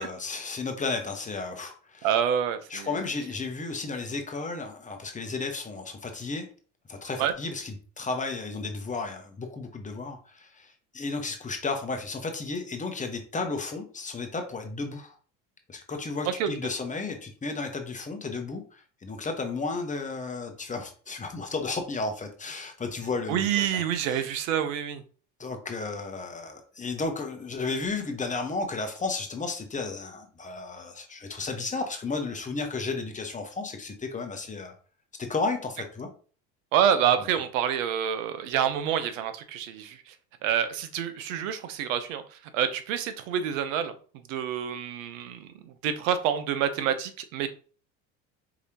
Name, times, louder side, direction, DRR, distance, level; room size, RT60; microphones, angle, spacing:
voice 1, 0.0-2.1 2.7-6.4 6.9-15.1 15.7-23.8 24.1-24.2 25.4-34.7 35.2-36.1, left 3 dB, 20° left, 1.0 m, -33 dB
voice 2, 2.0-3.0 7.2-7.3 16.4-16.5 23.3-25.0 36.7-40.1 40.4-43.9 44.3-47.5, right 9 dB, 80° right, 0.8 m, -27 dB
4.8 x 3.3 x 2.8 m
supercardioid pair, 95°, 38 cm